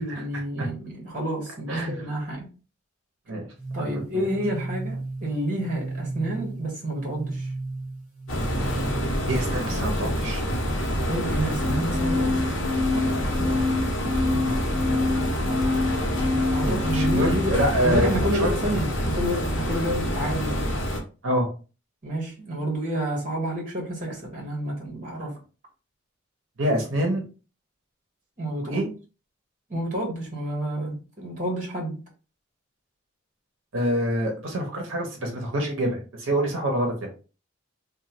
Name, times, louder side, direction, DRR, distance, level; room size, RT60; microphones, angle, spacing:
voice 1, 0.0-2.5 3.7-7.5 11.1-12.4 16.4-17.6 17.8-20.7 22.0-25.3 28.4-28.9 29.7-32.0, right 1 dB, 40° right, 1.1 m, -29 dB
voice 2, 1.7-2.0 3.3-3.4 3.8-4.2 9.3-10.4 14.4-14.6 16.6-18.1 18.4-18.5 21.2-21.5 26.6-27.2 28.6-28.9 33.7-36.9, right 1 dB, 80° right, 0.7 m, -26 dB
sound 1, 3.6-9.5 11.6-17.6, left 2 dB, 5° right, 0.8 m, -29 dB
sound 2, 8.3-21.0, equal, 80° left, 0.8 m, -27 dB
3.0 x 2.2 x 2.9 m
head